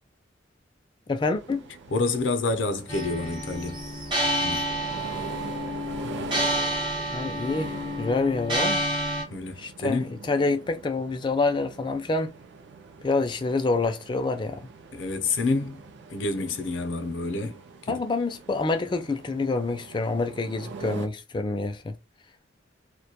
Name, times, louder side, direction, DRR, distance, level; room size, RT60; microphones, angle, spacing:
voice 1, 1.1-1.7 7.1-8.8 9.6-12.3 13.0-14.6 17.9-22.0, left 3 dB, 25° left, 0.3 m, -27 dB
sound 1, 1.3-21.1, right 4 dB, 70° right, 0.4 m, -43 dB
voice 2, 1.9-3.9 4.4-4.7 9.3-10.1 14.9-15.8 16.1-18.0, left 3 dB, 80° left, 0.5 m, -28 dB
sound 2, 2.9-9.2, equal, 25° right, 0.6 m, -29 dB
2.2 x 2.1 x 2.7 m
head